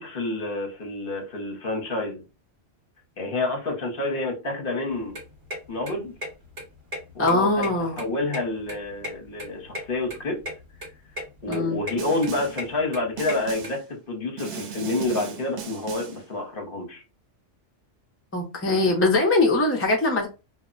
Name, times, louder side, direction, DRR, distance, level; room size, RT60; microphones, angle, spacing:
voice 1, 0.0-2.2 3.2-5.2 5.7-6.1 7.1-7.6 8.0-10.4 11.4-13.8 14.1-17.0, left 2 dB, 50° left, 1.0 m, -28 dB
sound 1, 4.9-13.7, left 1 dB, 45° right, 1.2 m, -37 dB
voice 2, 7.2-8.0 11.5-11.8 18.3-20.3, left 2 dB, 15° left, 0.5 m, -22 dB
Snare drum, 12.0-12.7 13.2-13.9 14.4-16.3, right 8 dB, 70° right, 0.9 m, -37 dB
2.3 x 2.1 x 3.7 m
omnidirectional pair, 1.2 m